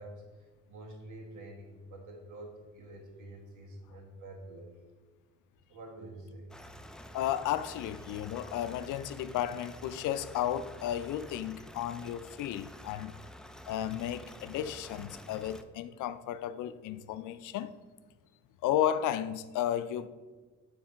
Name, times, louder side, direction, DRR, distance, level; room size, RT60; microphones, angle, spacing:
voice 1, 0.0-4.7 5.7-6.5 7.1-7.2, right 1 dB, 80° right, 1.6 m, -48 dB
sound 1, 6.5-15.6, left 1 dB, ahead, 0.3 m, -49 dB
voice 2, 7.1-13.1 13.7-17.7 18.6-20.1, left 11 dB, 85° left, 0.5 m, -33 dB
7.2 x 3.3 x 6.1 m
cardioid pair, 90°, 30 cm